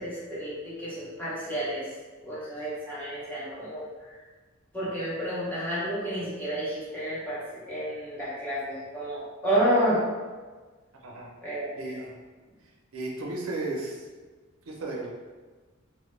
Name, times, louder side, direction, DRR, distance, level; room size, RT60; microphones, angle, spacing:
voice 1, 0.0-1.9 2.2-4.2 4.7-10.0 11.4-12.0, right 1 dB, 10° left, -11 dB, 0.7 m, -30 dB
voice 2, 11.8-12.1 12.9-14.1 14.7-15.1, right 2 dB, 80° right, -1 dB, 0.5 m, -34 dB
2.1 x 2.0 x 3.0 m, 1.3 s
head